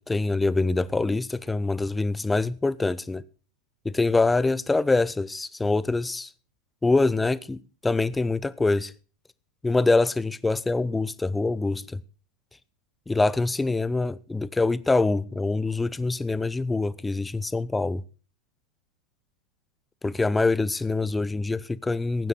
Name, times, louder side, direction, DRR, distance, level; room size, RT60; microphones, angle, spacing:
voice 1, 0.0-3.2 3.8-6.3 6.8-8.9 9.6-12.0 13.1-18.0 20.0-22.3, left 3 dB, 10° left, 0.7 m, -25 dB
16.5 x 9.5 x 5.8 m
figure-of-eight pair, 90°, 0 cm